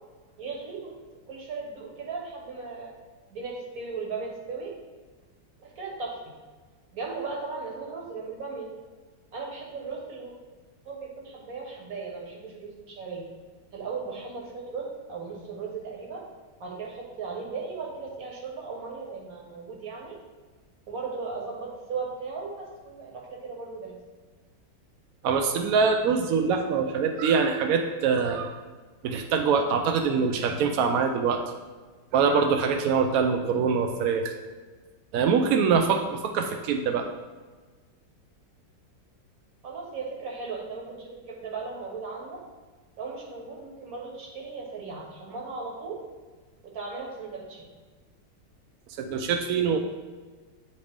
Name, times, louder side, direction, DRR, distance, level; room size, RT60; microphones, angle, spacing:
voice 1, 0.4-0.9 1.3-3.0 3.3-4.7 5.6-6.2 6.9-8.7 9.3-10.3 10.8-13.3 13.7-16.2 16.6-20.2 20.9-24.0 39.6-42.4 43.0-46.0 46.6-47.7, right 4 dB, 55° right, -1 dB, 1.6 m, -37 dB
voice 2, 25.2-28.5 29.0-31.4 32.1-34.3 35.1-37.0 49.0-49.8, right 5 dB, 75° right, 4 dB, 0.8 m, -24 dB
9.3 x 3.3 x 3.5 m, 1.4 s
omnidirectional pair, 2.0 m